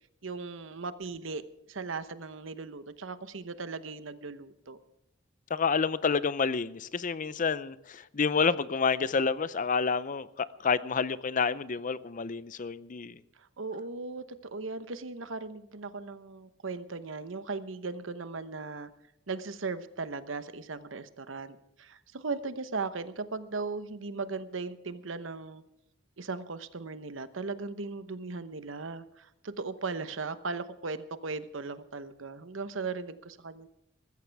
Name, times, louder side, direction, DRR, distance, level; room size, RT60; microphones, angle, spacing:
voice 1, 0.2-1.4 1.7-4.8 13.4-18.9 19.3-25.6 26.2-33.7, right 4 dB, 80° right, 1.0 m, -38 dB
voice 2, 5.5-13.2, left 5 dB, 45° left, 0.6 m, -29 dB
21.0 x 14.5 x 3.5 m
head